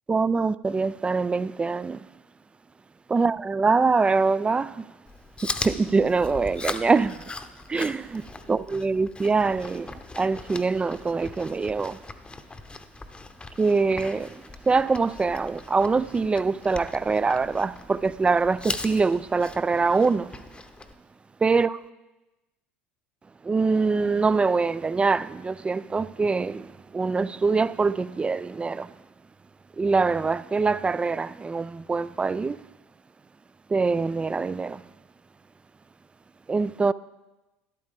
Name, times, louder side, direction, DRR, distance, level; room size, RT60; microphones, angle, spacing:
voice 1, 0.1-2.1 3.1-4.9 5.4-7.3 7.7-12.0 13.6-20.4 21.4-21.8 23.4-28.9 29.8-32.6 33.7-34.8 36.5-36.9, right 4 dB, 20° right, 0.3 m, -24 dB
Chewing mastication, 5.1-20.9, left 3 dB, 15° left, 0.8 m, -39 dB
12.5 x 12.0 x 3.5 m
hypercardioid pair, 70°, 6 cm